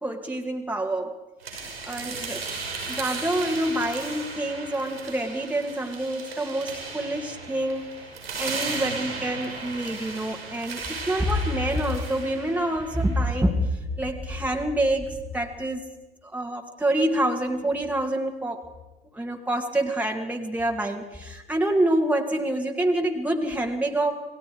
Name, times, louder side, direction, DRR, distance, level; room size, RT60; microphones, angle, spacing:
voice 1, 0.0-1.1 1.5-2.4 2.9-7.9 8.4-15.8 16.3-18.6 19.1-24.1, right 1 dB, 5° right, 1 dB, 2.5 m, -27 dB
sound 1, 1.4-13.4, right 4 dB, 80° right, 5.4 m, -36 dB
28.5 x 20.0 x 5.0 m, 1.1 s
figure-of-eight pair, 60°, 29 cm